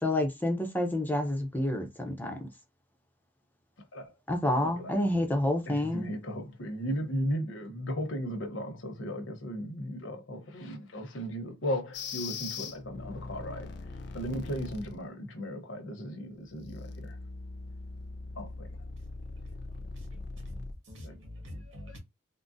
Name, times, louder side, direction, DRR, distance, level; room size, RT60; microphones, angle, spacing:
voice 1, 0.0-2.3 4.3-6.1, left 1 dB, 10° left, 0.6 m, -28 dB
voice 2, 4.5-4.9 5.7-13.7 14.1-17.2 18.3-18.7 21.0-21.1, equal, 70° left, 0.9 m, -36 dB
sound 1, 11.9-15.0 16.4-20.7, left 3 dB, 55° left, 0.5 m, -41 dB
voice 3, 20.1-22.0, left 1 dB, 70° right, 1.6 m, -45 dB
3.7 x 2.0 x 2.5 m
head